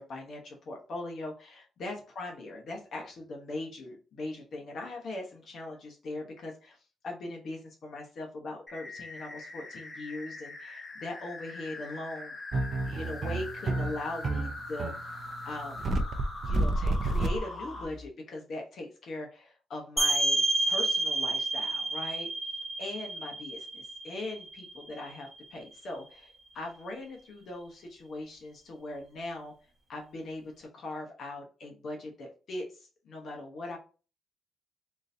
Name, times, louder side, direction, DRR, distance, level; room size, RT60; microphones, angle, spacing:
voice 1, 0.0-12.3 12.7-14.9 15.4-15.9 16.4-22.3 22.8-29.5 29.9-33.8, left 2 dB, 55° left, 0 dB, 0.9 m, -40 dB
sound 1, 8.7-17.8, left 2 dB, 25° left, 0.8 m, -42 dB
sound 2, 12.5-18.0, right 2 dB, 45° right, 0.4 m, -30 dB
sound 3, 20.0-25.4, right 2 dB, ahead, 1.1 m, -30 dB
3.7 x 2.7 x 2.6 m, 0.35 s
cardioid pair, 130°, 0 cm